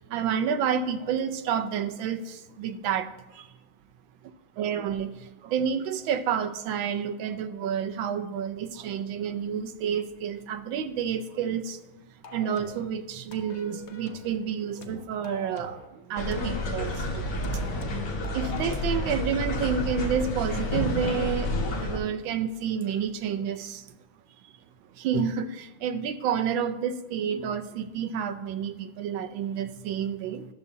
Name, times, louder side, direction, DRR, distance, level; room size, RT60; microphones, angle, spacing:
voice 1, 0.1-3.1 3.4-3.5 4.6-5.1 5.4-11.8 12.3-15.8 16.1-17.3 18.3-23.8 25.0-30.4, right 7 dB, 75° right, 9 dB, 1.3 m, -29 dB
sound 1, 12.2-12.9 13.3-14.4 14.8-15.9 16.3-18.9, left 3 dB, 80° left, 0.6 m, -45 dB
sound 2, 16.2-22.0, left 1 dB, 60° left, 1.8 m, -29 dB
12.0 x 6.8 x 2.7 m, 1.1 s
omnidirectional pair, 2.3 m